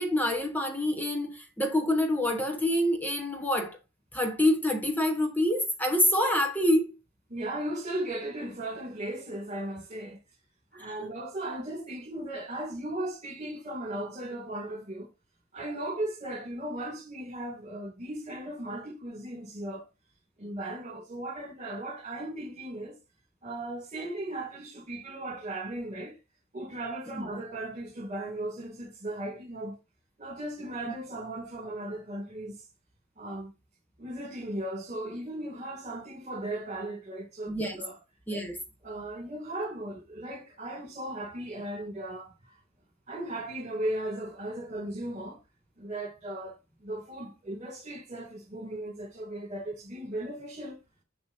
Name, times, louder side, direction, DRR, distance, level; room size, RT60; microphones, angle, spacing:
voice 1, 0.0-3.8 4.1-6.9 10.8-11.1 27.2-27.3 37.5-37.8 38.3-38.6, left 1 dB, 10° left, 1.1 m, -27 dB
voice 2, 7.3-10.2 10.7-15.1 15.5-19.9 20.4-23.0 23.4-26.2 26.5-29.8 30.2-32.6 33.2-33.5 34.0-38.0 38.8-42.6 43.1-45.4 45.8-50.8, right 1 dB, 35° right, 2.5 m, -37 dB
7.1 x 6.3 x 2.7 m
head